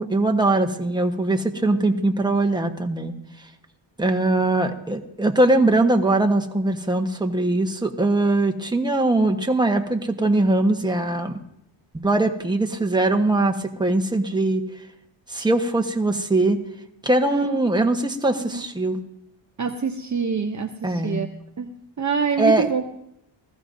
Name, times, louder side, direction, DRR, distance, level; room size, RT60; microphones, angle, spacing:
voice 1, 0.0-3.1 4.0-11.3 11.9-14.6 15.3-16.6 17.0-19.0 20.8-21.2 22.4-22.7, right 2 dB, 10° right, 3 dB, 1.2 m, -21 dB
voice 2, 17.3-17.6 18.4-18.7 19.6-21.3 21.6-22.9, right 6 dB, 35° right, 4 dB, 0.8 m, -26 dB
20.0 x 14.5 x 2.7 m, 0.77 s
cardioid pair, 95°, 49 cm